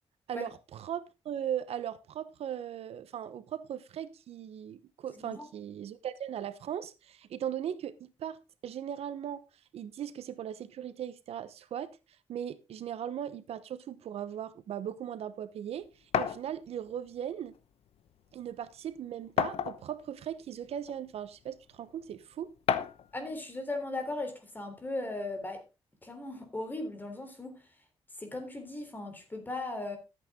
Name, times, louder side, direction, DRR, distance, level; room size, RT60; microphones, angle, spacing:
voice 1, 0.3-9.4 9.7-12.0 12.3-15.9 16.1-17.6 18.3-22.5, right 9 dB, 90° right, 1.0 m, -38 dB
voice 2, 5.1-5.5 23.1-25.6 26.0-27.6 28.2-30.0, left 2 dB, 20° left, 3.6 m, -37 dB
sound 1, 16.1-16.4 17.6-17.7 18.1-18.2 19.4-20.0 20.9-21.0 22.7-23.1, left 8 dB, 80° left, 0.9 m, -29 dB
13.5 x 8.7 x 3.7 m
wide cardioid pair, 135°, 10 cm